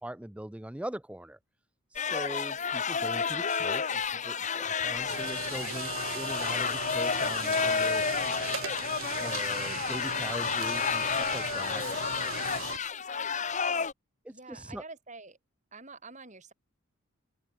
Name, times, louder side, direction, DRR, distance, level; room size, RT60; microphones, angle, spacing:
voice 1, 0.0-1.4 1.9-8.0 9.2-11.8 14.2-14.8, right 1 dB, 5° right, 0.4 m, -41 dB
sound 1, 2.0-13.9, left 6 dB, 35° left, 1.0 m, -31 dB
sound 2, 5.1-12.8, right 8 dB, 65° right, 0.6 m, -39 dB
voice 2, 14.3-15.4 15.7-16.5, right 3 dB, 35° right, 4.4 m, -47 dB
head